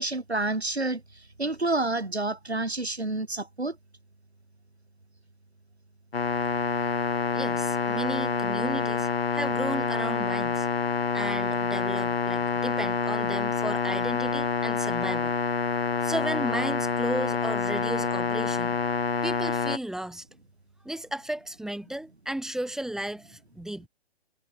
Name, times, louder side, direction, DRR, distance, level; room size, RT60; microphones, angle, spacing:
voice 1, 0.0-3.8, right 2 dB, 85° right, 2.2 m, -29 dB
sound 1, 6.1-19.8, left 5 dB, 70° left, 2.4 m, -27 dB
voice 2, 7.3-10.7 11.1-15.3 16.0-18.8 19.2-20.2 20.8-23.9, right 1 dB, ahead, 2.2 m, -34 dB
figure-of-eight pair, 120°, 32 cm